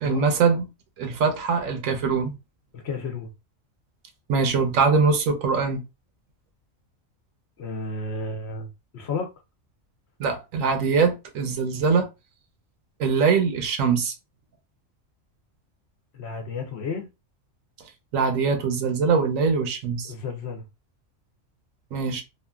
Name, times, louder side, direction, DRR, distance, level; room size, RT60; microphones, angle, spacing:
voice 1, 0.0-0.6 1.0-2.3 4.3-5.8 10.2-12.1 13.0-14.1 18.1-20.1 21.9-22.2, right 5 dB, 80° right, 1.1 m, -22 dB
voice 2, 2.7-3.3 7.6-9.3 16.1-17.1 20.0-20.6, left 4 dB, 60° left, 0.8 m, -32 dB
2.9 x 2.4 x 2.3 m
omnidirectional pair, 1.4 m